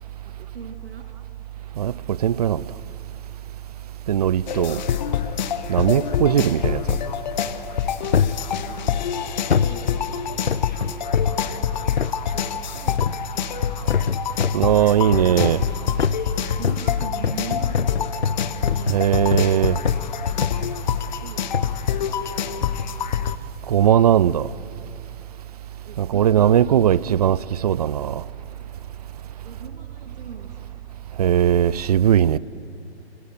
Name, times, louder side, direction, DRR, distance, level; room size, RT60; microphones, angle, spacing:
voice 1, 0.2-1.1 8.1-9.1 9.6-11.1 11.4-11.7 12.3-13.0 13.3-13.8 16.6-19.6 21.1-21.7 25.8-27.3 29.4-30.7, right 5 dB, 60° right, 2.1 m, -41 dB
voice 2, 1.8-2.6 4.1-4.8 5.7-7.0 14.5-15.6 18.9-19.8 23.7-24.5 26.0-27.4 27.6-28.2 31.2-32.4, right 10 dB, 40° right, 0.5 m, -19 dB
sound 1, 4.5-23.4, left 9 dB, 45° left, 1.0 m, -26 dB
sound 2, 8.1-8.4 9.5-9.8 10.5-11.4 12.0-12.2 13.0-13.3 13.9-14.7 15.4-15.7 16.0-19.6 19.8-20.1 20.4-20.8 21.5-21.8 22.6-22.9 23.5-23.6, left 6 dB, 80° left, 0.7 m, -24 dB
25.5 x 23.0 x 6.5 m
figure-of-eight pair, 125°, 32 cm